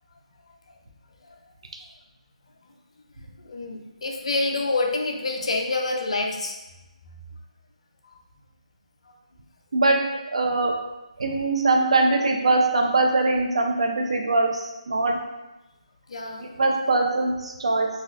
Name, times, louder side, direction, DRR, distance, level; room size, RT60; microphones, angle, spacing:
voice 1, 3.4-6.6 16.1-16.5, left 3 dB, 55° left, 2 dB, 0.5 m, -27 dB
voice 2, 10.3-10.7 11.2-15.2 16.4-17.9, right 2 dB, 55° right, 2 dB, 0.5 m, -22 dB
4.0 x 2.4 x 2.4 m, 1.0 s
hypercardioid pair, 175°, 4 cm